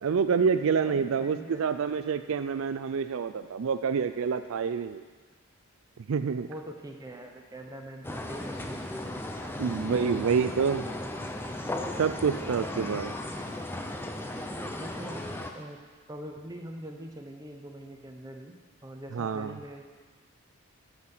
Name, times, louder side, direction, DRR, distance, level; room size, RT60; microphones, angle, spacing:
voice 1, 0.0-5.0 6.1-6.5 9.6-10.9 12.0-13.1 19.1-19.6, right 6 dB, 70° right, 10 dB, 0.4 m, -27 dB
voice 2, 0.8-2.0 6.5-11.7 12.5-13.5 14.5-15.8 16.1-18.6 18.8-19.8, right 1 dB, 15° right, 2 dB, 0.8 m, -44 dB
sound 1, 8.0-15.5, left 1 dB, 10° left, 0.5 m, -36 dB
13.0 x 5.8 x 6.1 m, 1.4 s
head